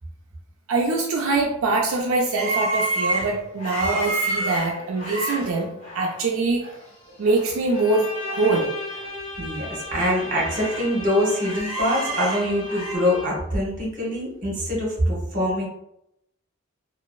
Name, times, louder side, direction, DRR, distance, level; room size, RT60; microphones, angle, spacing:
voice 1, 0.7-6.6 7.2-8.1 8.3-8.7, right 3 dB, 85° right, 0 dB, 0.4 m, -23 dB
sound 1, 2.4-6.2 6.6-6.8 7.1-8.6 8.9-9.0 9.6-10.9 11.2-13.0, right 2 dB, 65° left, 1.3 m, -30 dB
Bowed string instrument, 7.7-13.6, left 1 dB, 40° left, 1.1 m, -36 dB
voice 2, 9.4-15.7, equal, 40° right, -4 dB, 1.1 m, -24 dB
3.0 x 2.4 x 2.3 m, 0.81 s
head